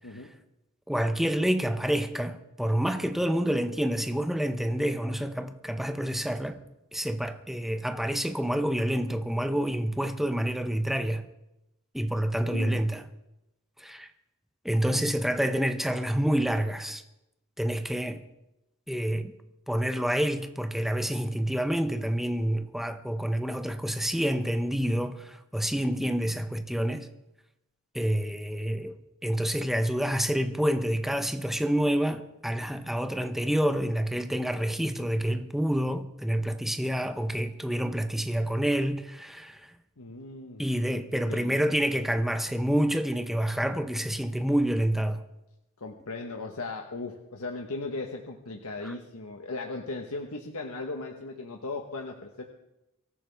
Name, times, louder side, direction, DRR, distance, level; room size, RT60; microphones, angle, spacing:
voice 1, 0.9-6.6 6.9-11.2 11.9-13.0 13.8-14.1 14.6-17.0 17.6-18.2 18.9-19.3 19.7-27.1 27.9-28.9 29.2-39.7 40.6-45.2 48.8-48.9, equal, ahead, 0.8 m, -28 dB
voice 2, 12.5-12.8 40.0-40.6 41.1-41.6 45.8-52.4, left 3 dB, 80° left, 1.2 m, -37 dB
23.5 x 14.0 x 3.5 m
head